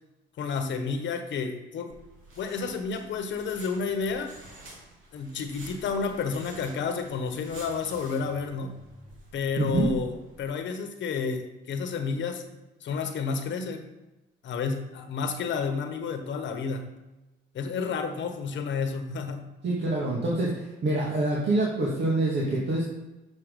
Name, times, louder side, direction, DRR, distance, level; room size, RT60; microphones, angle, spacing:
voice 1, 0.4-1.9 2.4-4.3 5.1-8.8 9.3-12.4 12.8-13.9 14.4-16.9 17.5-19.5, left 5 dB, 70° left, 6 dB, 1.2 m, -31 dB
sound 1, 1.9-10.4, right 2 dB, 80° right, 2.6 m, -49 dB
voice 2, 9.6-9.9 19.6-22.9, right 2 dB, 60° right, -5 dB, 2.0 m, -26 dB
7.4 x 6.1 x 5.3 m, 1.0 s
cardioid pair, 90°, 20 cm